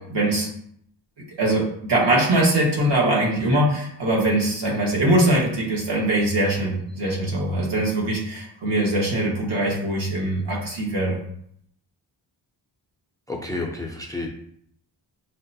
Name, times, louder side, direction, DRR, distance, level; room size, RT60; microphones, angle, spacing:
voice 1, 0.1-0.5 1.4-11.2, right 1 dB, 65° right, -3 dB, 1.4 m, -22 dB
voice 2, 13.3-14.3, left 2 dB, 10° left, 1 dB, 0.4 m, -30 dB
6.2 x 2.1 x 2.7 m, 0.69 s
cardioid pair, 100°, 45 cm